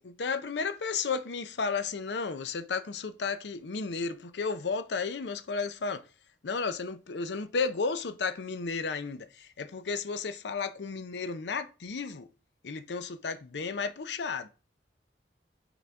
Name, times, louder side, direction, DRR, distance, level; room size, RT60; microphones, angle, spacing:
voice 1, 0.2-6.0 6.4-12.3 12.6-14.5, left 4 dB, 70° left, 0.6 m, -33 dB
5.9 x 3.9 x 4.5 m
head